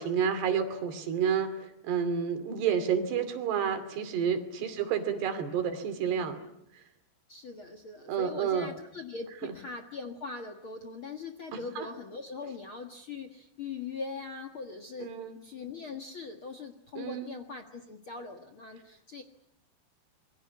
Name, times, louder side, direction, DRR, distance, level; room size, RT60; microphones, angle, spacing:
voice 1, 0.0-6.5 6.7-6.8 8.1-8.7 9.4-9.5 11.5-11.9 15.0-15.4 17.0-17.3, right 7 dB, 85° right, 9 dB, 4.7 m, -30 dB
voice 2, 4.6-4.9 7.3-15.1 15.4-19.2, left 4 dB, 50° left, 5 dB, 1.6 m, -41 dB
27.0 x 23.0 x 9.5 m, 0.77 s
omnidirectional pair, 4.7 m